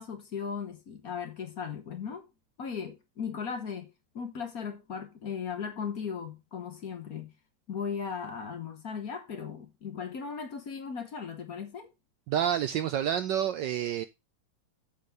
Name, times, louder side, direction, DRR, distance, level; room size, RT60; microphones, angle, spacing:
voice 1, 0.0-2.3 2.6-7.3 7.7-11.9, left 6 dB, 50° left, 1.3 m, -37 dB
voice 2, 12.3-14.0, right 10 dB, 70° right, 1.1 m, -28 dB
8.4 x 4.3 x 6.5 m
omnidirectional pair, 2.4 m